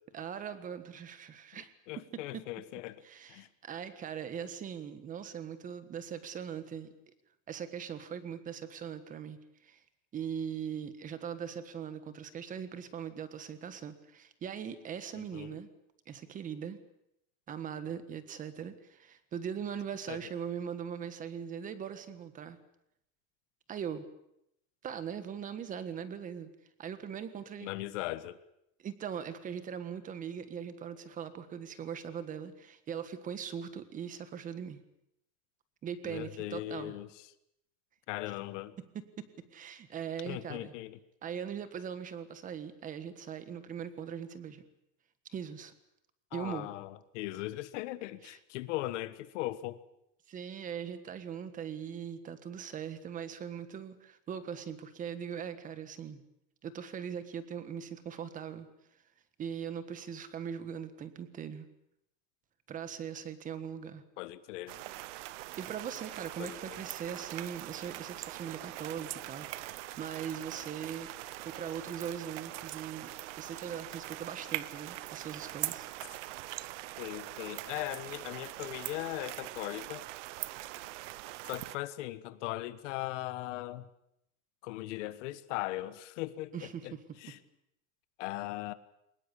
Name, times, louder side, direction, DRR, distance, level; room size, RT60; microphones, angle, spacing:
voice 1, 0.1-1.7 2.1-2.5 3.0-6.9 7.5-9.8 10.1-15.7 16.1-16.8 17.5-22.6 23.7-24.0 24.8-26.5 26.8-27.7 28.8-34.8 35.8-36.9 38.3-38.4 38.9-40.7 41.2-44.6 45.3-45.7 46.3-46.7 48.2-48.4 50.3-56.2 56.6-58.7 59.4-61.7 62.7-64.0 65.6-71.1 71.4-75.9 86.5-87.2, right 8 dB, 20° right, 12 dB, 1.5 m, -40 dB
voice 2, 1.9-3.0 3.3-3.5 15.1-15.6 20.1-20.2 27.6-28.4 36.0-37.1 38.1-38.7 40.2-41.0 46.3-49.8 64.2-64.8 66.4-66.8 77.0-80.0 81.4-83.9 84.6-86.6 86.8-86.9 87.2-87.4 88.2-88.7, left 16 dB, 75° left, 14 dB, 1.5 m, -39 dB
sound 1, 64.7-81.8, right 18 dB, 75° right, 1.0 m, -42 dB
23.0 x 20.5 x 8.5 m, 0.79 s
cardioid pair, 175°, 36 cm